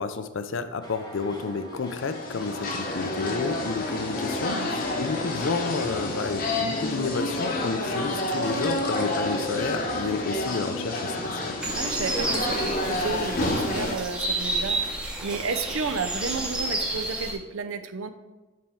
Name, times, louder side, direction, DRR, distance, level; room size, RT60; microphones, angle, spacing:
voice 1, 0.0-11.6, left 4 dB, 65° left, 10 dB, 0.5 m, -31 dB
sound 1, 0.8-17.1, equal, 20° left, 1.0 m, -46 dB
sound 2, 1.8-14.0, left 1 dB, 40° left, 0.8 m, -29 dB
sound 3, 11.6-17.3, right 2 dB, 5° right, 0.8 m, -30 dB
voice 2, 11.7-18.1, right 5 dB, 75° right, 9 dB, 0.5 m, -32 dB
7.6 x 4.4 x 3.6 m, 1.2 s
head